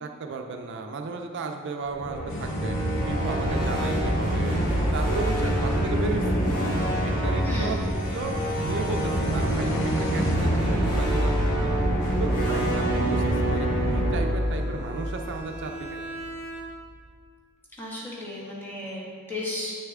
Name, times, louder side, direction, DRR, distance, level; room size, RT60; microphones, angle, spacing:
voice 1, 0.0-2.8 3.1-4.6 4.9-6.4 6.9-7.8 8.1-11.3 11.6-11.8 12.2-16.0, right 4 dB, 55° right, 4 dB, 0.4 m, -34 dB
sound 1, 1.9-15.9, right 1 dB, 85° left, 2.1 m, -25 dB
sound 2, 2.3-10.4, left 1 dB, 65° left, 0.8 m, -35 dB
voice 2, 7.4-7.8 17.8-19.7, left 2 dB, 10° left, -6 dB, 1.8 m, -34 dB
Bowed string instrument, 14.0-17.1, right 1 dB, 30° left, 1.3 m, -40 dB
8.2 x 6.6 x 3.6 m, 2.1 s
head